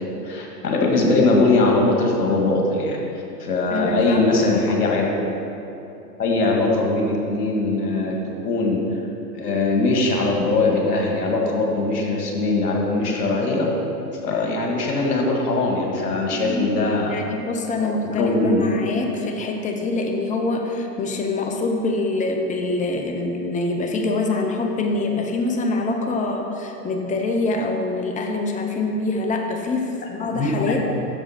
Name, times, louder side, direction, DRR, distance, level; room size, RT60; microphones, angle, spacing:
voice 1, 0.0-3.0 3.4-5.2 6.2-8.2 8.4-8.8 9.3-13.7 14.2-17.2 17.8-18.6 30.3-30.8, left 2 dB, 85° left, 0 dB, 1.8 m, -21 dB
voice 2, 3.7-4.9 16.3-16.7 16.9-30.8, left 3 dB, 15° left, 3 dB, 0.8 m, -25 dB
10.0 x 7.0 x 4.3 m, 2.9 s
hypercardioid pair, 100°, 46 cm